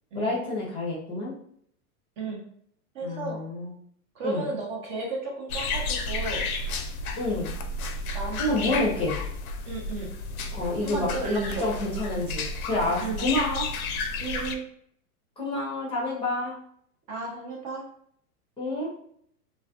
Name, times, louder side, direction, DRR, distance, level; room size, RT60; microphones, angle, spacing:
voice 1, 0.1-1.4 3.0-3.7 4.2-4.5 7.2-7.5 8.4-9.2 10.5-13.7 15.4-16.6 18.6-18.9, left 2 dB, 10° left, -6 dB, 0.6 m, -28 dB
voice 2, 2.9-3.4 4.1-6.5 8.1-8.8 9.6-10.1 10.8-11.7 13.0-13.2 14.2-14.6 17.1-17.9, right 3 dB, 35° right, -1 dB, 0.7 m, -33 dB
sound 1, 5.5-14.6, left 3 dB, 70° left, 0.5 m, -32 dB
2.4 x 2.3 x 2.4 m, 0.65 s
hypercardioid pair, 110°, 45 cm